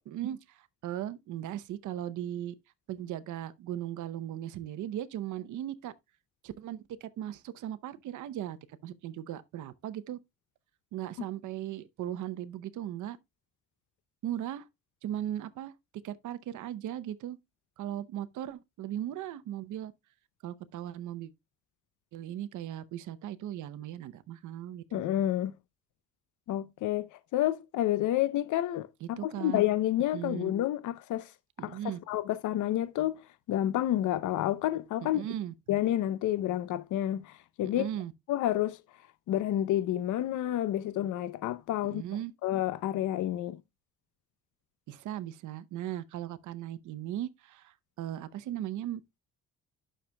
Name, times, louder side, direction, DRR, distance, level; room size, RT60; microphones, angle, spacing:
voice 1, 0.0-2.5 2.9-5.9 6.4-10.2 10.9-13.2 14.2-14.6 15.0-15.7 16.0-17.4 17.8-19.9 20.4-21.3 22.1-25.0 29.0-29.6 30.1-30.5 31.6-32.0 35.0-35.5 37.6-38.1 41.8-42.3 44.9-49.0, right 12 dB, 80° right, 0.8 m, -38 dB
voice 2, 24.9-25.5 26.5-31.3 31.6-31.8 32.1-33.2 33.5-35.2 35.7-37.9 38.3-38.8 39.3-42.0 42.4-43.6, left 13 dB, 75° left, 0.6 m, -29 dB
10.0 x 6.6 x 2.2 m
cardioid pair, 90°, 30 cm